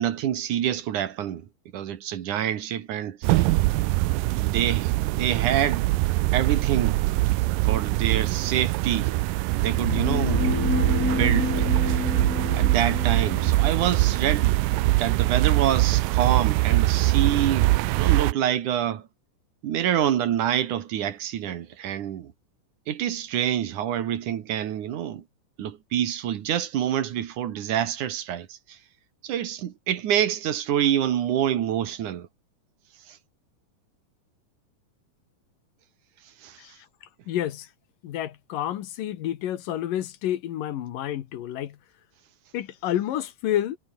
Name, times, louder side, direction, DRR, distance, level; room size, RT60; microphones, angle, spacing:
voice 1, 0.0-1.4 1.7-3.2 4.4-5.9 6.3-7.0 7.6-9.1 9.5-10.6 11.0-11.5 12.5-14.6 15.0-19.0 19.6-22.3 22.9-25.2 25.6-28.5 29.2-32.3 36.4-36.6, right 10 dB, 65° right, 2.9 m, -26 dB
sound 1, 3.2-18.3, right 20 dB, 85° right, 2.3 m, -23 dB
sound 2, 9.6-15.5, left 3 dB, 25° left, 4.1 m, -30 dB
voice 2, 37.3-37.7 38.0-41.8 42.5-43.8, left 12 dB, 75° left, 3.1 m, -29 dB
omnidirectional pair, 4.0 m